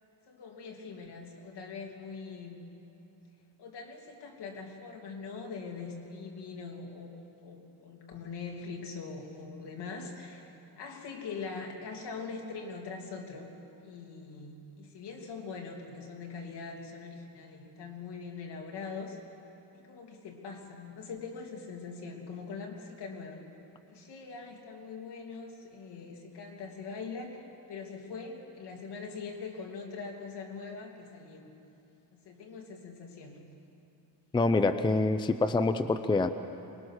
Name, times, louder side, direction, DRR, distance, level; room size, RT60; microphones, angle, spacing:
voice 1, 0.3-2.6 3.6-13.5 13.8-19.2 19.7-23.4 23.9-27.4 27.7-31.5 32.1-33.4, left 4 dB, 70° left, 1 dB, 3.0 m, -42 dB
voice 2, 34.3-36.3, left 3 dB, 10° left, 10 dB, 0.5 m, -26 dB
24.0 x 21.5 x 6.4 m, 2.8 s
cardioid pair, 130°, 42 cm